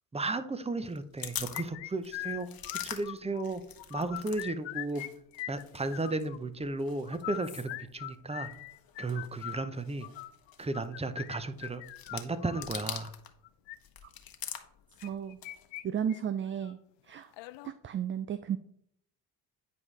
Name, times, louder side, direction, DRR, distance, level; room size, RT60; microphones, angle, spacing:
voice 1, 0.1-2.5 2.8-3.6 3.9-5.0 5.5-8.5 9.0-10.1 10.6-11.8 12.1-13.1, right 2 dB, 15° right, 12 dB, 0.7 m, -34 dB
sound 1, 0.8-4.5 4.7-13.4 13.7-15.8, left 9 dB, 45° left, 1.1 m, -45 dB
sound 2, 1.5-3.4 3.8-5.1 5.3-6.4 7.1-12.7 13.4-13.8 15.0-15.8 16.1-16.2 16.6-16.7 17.3-17.7, left 17 dB, 65° left, 0.6 m, -41 dB
voice 2, 15.0-15.4 15.8-16.8 17.1-17.3 17.6-18.6, right 8 dB, 30° right, 13 dB, 0.3 m, -33 dB
9.5 x 4.7 x 3.3 m, 0.69 s
hypercardioid pair, 55°, 49 cm